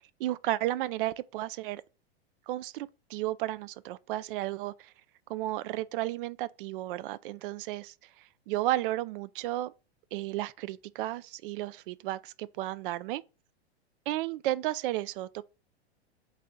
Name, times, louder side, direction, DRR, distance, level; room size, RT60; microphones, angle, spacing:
voice 1, 0.2-1.8 2.5-4.9 5.3-7.9 8.5-9.7 10.1-13.2 14.1-15.4, right 15 dB, 55° right, 0.4 m, -33 dB
4.1 x 3.4 x 3.7 m
hypercardioid pair, 110°, 32 cm